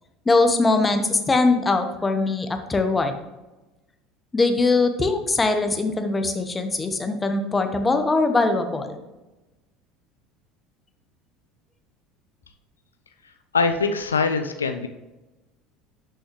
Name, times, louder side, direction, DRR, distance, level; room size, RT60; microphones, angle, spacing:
voice 1, 0.2-3.1 4.3-9.0, left 3 dB, 20° left, 6 dB, 1.2 m, -21 dB
voice 2, 13.5-14.9, left 4 dB, 85° left, 7 dB, 0.5 m, -23 dB
11.5 x 6.3 x 3.2 m, 1.1 s
figure-of-eight pair, 70°, 0 cm